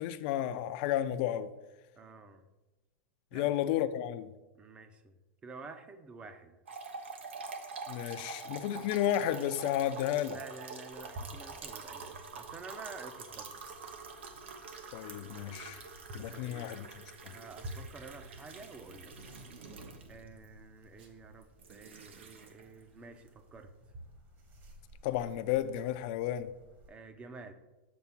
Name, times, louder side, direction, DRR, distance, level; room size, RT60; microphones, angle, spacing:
voice 1, 0.0-1.5 3.3-4.3 7.9-10.4 14.9-15.8 16.1-16.9 25.0-26.5, left 11 dB, 50° left, 0.4 m, -32 dB
voice 2, 2.0-2.5 3.3-3.5 4.5-5.1 5.4-6.6 10.3-13.5 16.3-16.7 17.2-19.1 20.1-23.7 26.9-27.5, right 4 dB, 15° right, 0.5 m, -49 dB
sound 1, 6.7-20.4 21.4-22.8, right 4 dB, 90° right, 0.9 m, -46 dB
sound 2, 10.9-26.9, equal, 35° right, 1.3 m, -53 dB
sound 3, 17.0-20.3 20.9-21.2, right 3 dB, 65° right, 1.2 m, -56 dB
7.1 x 3.4 x 5.8 m
supercardioid pair, 140°, 6 cm